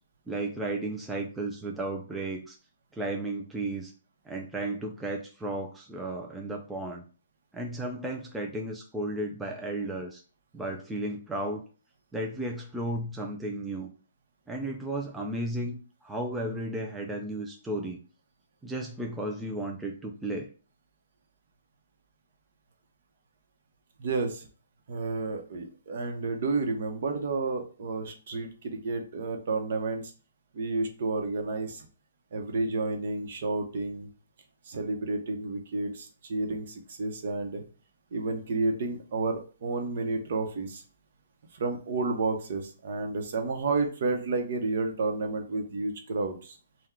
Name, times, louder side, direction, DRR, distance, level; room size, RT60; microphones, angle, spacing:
voice 1, 0.3-2.6 2.9-3.9 4.3-7.0 7.5-10.2 10.5-11.6 12.1-13.9 14.5-18.0 18.6-20.5, right 1 dB, 5° right, 0 dB, 0.3 m, -34 dB
voice 2, 24.0-24.5 24.9-30.1 30.5-31.9 32.3-34.1 34.7-37.6 38.1-40.8 41.5-46.6, right 3 dB, 55° right, 4 dB, 0.8 m, -31 dB
3.7 x 2.2 x 4.3 m, 0.37 s
hypercardioid pair, 165°, 0 cm